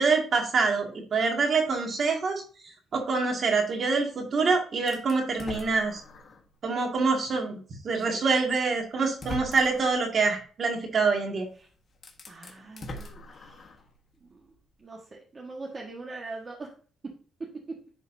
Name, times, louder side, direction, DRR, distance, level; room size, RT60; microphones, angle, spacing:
voice 1, 0.0-6.0 6.6-11.5, right 4 dB, 50° right, 2 dB, 2.0 m, -26 dB
sound 1, 4.9-6.5 7.0-7.1 8.4-8.5 9.0-10.0 11.4-11.5 11.9-13.9, left 2 dB, 40° left, 1.5 m, -42 dB
voice 2, 12.3-13.7 14.2-14.5 14.8-16.7 17.0-17.1 17.7-17.8, right 3 dB, 35° right, -2 dB, 1.4 m, -42 dB
10.5 x 4.0 x 2.7 m, 0.40 s
cardioid pair, 90°, 0 cm